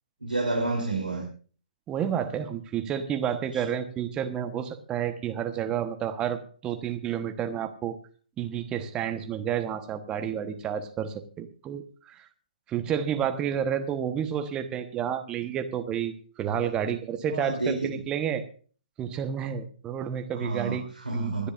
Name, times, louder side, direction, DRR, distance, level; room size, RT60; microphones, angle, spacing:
voice 1, 0.2-1.3 3.5-3.6 17.3-17.9 20.3-21.5, right 3 dB, 85° right, -1 dB, 3.4 m, -29 dB
voice 2, 1.9-8.0 8.4-12.3 12.7-18.4 19.0-20.8 21.1-21.5, right 9 dB, 15° right, 8 dB, 1.2 m, -30 dB
25.5 x 10.0 x 2.6 m, 0.41 s
figure-of-eight pair, 130°, 5 cm